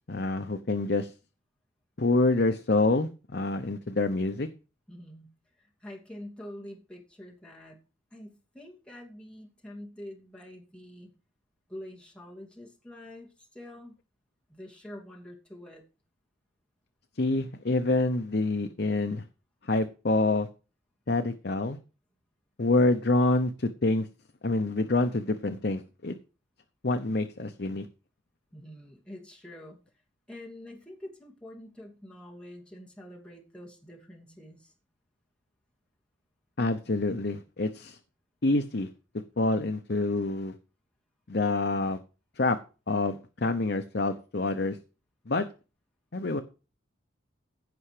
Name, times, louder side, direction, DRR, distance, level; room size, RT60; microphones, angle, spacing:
voice 1, 0.1-1.1 2.0-4.5 17.2-19.2 19.6-20.5 21.1-21.8 22.6-24.1 24.4-26.1 26.8-27.9 36.6-38.0 38.4-38.9 39.4-40.5 41.3-42.0 42.4-42.6 42.9-44.8 45.3-45.4 46.1-46.4, left 2 dB, 50° left, 8 dB, 0.8 m, -27 dB
voice 2, 4.9-5.3 5.6-7.8 8.1-11.1 11.7-13.9 14.5-15.8 28.5-29.8 30.3-34.7, left 1 dB, 5° left, -2 dB, 2.6 m, -46 dB
16.0 x 5.6 x 5.0 m, 0.33 s
head